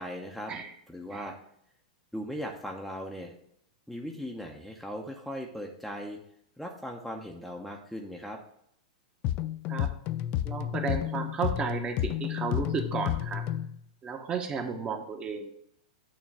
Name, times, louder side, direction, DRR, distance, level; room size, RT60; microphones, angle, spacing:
voice 1, 0.0-0.5 0.9-1.4 2.1-3.3 3.9-6.2 6.6-8.4, equal, ahead, 0 dB, 0.8 m, -38 dB
sound 1, 9.2-13.8, left 12 dB, 40° left, 0.4 m, -31 dB
voice 2, 10.4-13.4 14.0-15.5, right 5 dB, 25° right, 5 dB, 1.1 m, -33 dB
8.8 x 3.1 x 6.1 m, 0.71 s
hypercardioid pair, 110°, 4 cm